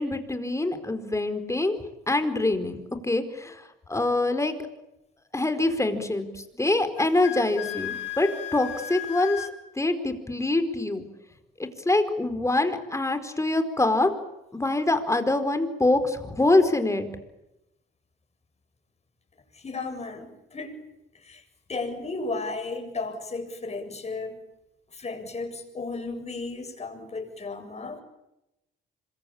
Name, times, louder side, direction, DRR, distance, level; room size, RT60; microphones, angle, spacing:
voice 1, 0.0-1.8 2.1-2.8 3.0-4.5 5.3-9.5 9.7-11.0 11.6-14.1 14.5-17.1, left 2 dB, 15° left, 9 dB, 4.7 m, -25 dB
Wind instrument woodwind instrument, 7.0-9.5, left 11 dB, 70° left, 3.5 m, -35 dB
voice 2, 19.5-20.7 21.1-21.4 21.7-24.4 24.9-28.0, left 3 dB, 35° left, 5 dB, 7.7 m, -34 dB
26.5 x 23.0 x 8.8 m, 0.89 s
cardioid pair, 90°, 20 cm